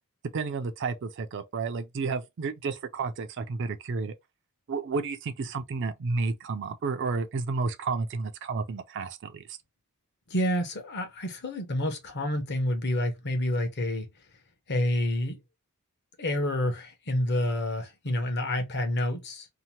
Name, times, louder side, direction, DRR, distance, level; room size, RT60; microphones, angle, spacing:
voice 1, 0.3-4.1 4.7-9.4, right 4 dB, 55° right, 0.4 m, -31 dB
voice 2, 10.3-14.1 14.7-15.4 16.2-19.5, left 1 dB, 50° left, 0.8 m, -28 dB
2.8 x 2.1 x 2.8 m
head